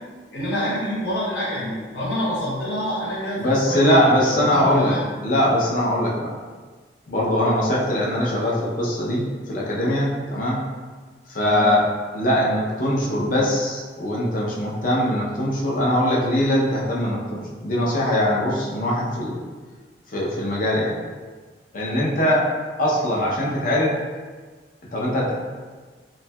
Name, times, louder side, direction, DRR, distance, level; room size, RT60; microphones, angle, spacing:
voice 1, 0.3-5.0 11.4-11.7, equal, 75° left, -8 dB, 1.1 m, -27 dB
voice 2, 3.4-5.0 5.2-6.4 7.1-10.6 11.3-11.9 12.1-19.4 20.1-21.0 21.7-22.5 22.8-24.0 24.9-25.3, equal, 50° left, -4 dB, 0.6 m, -21 dB
3.0 x 2.6 x 2.2 m, 1.4 s
head